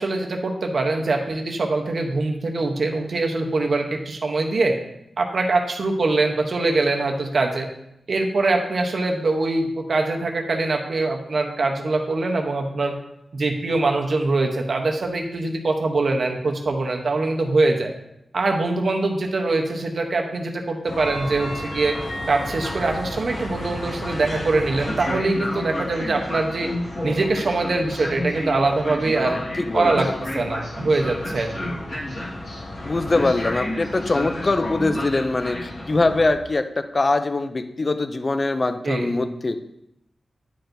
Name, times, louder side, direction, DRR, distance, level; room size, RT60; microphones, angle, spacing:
voice 1, 0.0-4.8 5.2-7.7 8.1-12.9 13.3-17.9 18.3-21.9 22.3-26.7 27.0-29.4 29.7-30.1 30.3-31.7 38.8-39.1, right 3 dB, 50° right, 3 dB, 0.8 m, -23 dB
Train, 20.9-36.3, left 1 dB, 60° left, 1.6 m, -31 dB
voice 2, 29.1-30.2 32.8-39.6, left 2 dB, 30° left, 9 dB, 0.4 m, -23 dB
10.0 x 4.4 x 2.6 m, 0.81 s
wide cardioid pair, 170°, 0 cm